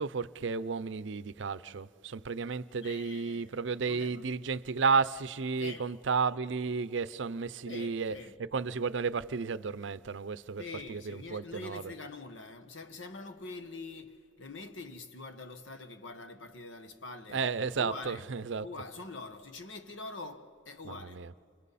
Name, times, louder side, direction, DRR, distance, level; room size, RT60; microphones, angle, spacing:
voice 1, 0.0-8.1 8.5-10.6 10.9-11.8 17.3-18.6 20.8-21.3, right 5 dB, 70° right, 0.5 m, -32 dB
voice 2, 2.8-4.3 5.6-5.9 7.6-8.4 10.6-17.5 17.8-18.3 18.6-21.2, left 3 dB, 75° left, 1.4 m, -45 dB
30.0 x 27.5 x 4.2 m
head